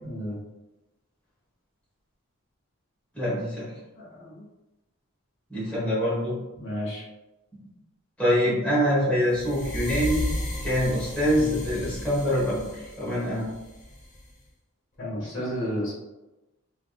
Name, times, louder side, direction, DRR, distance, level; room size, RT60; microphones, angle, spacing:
voice 1, 0.0-0.4 3.9-4.4 6.5-7.0 11.3-11.5 15.0-16.0, equal, 60° left, -6 dB, 1.4 m, -32 dB
voice 2, 3.1-3.7 5.5-6.4 8.2-10.3 10.6-13.5, equal, 5° left, -10 dB, 1.2 m, -25 dB
sound 1, 9.3-14.3, left 1 dB, 35° left, 0.9 m, -34 dB
3.4 x 3.1 x 2.3 m, 1.0 s
head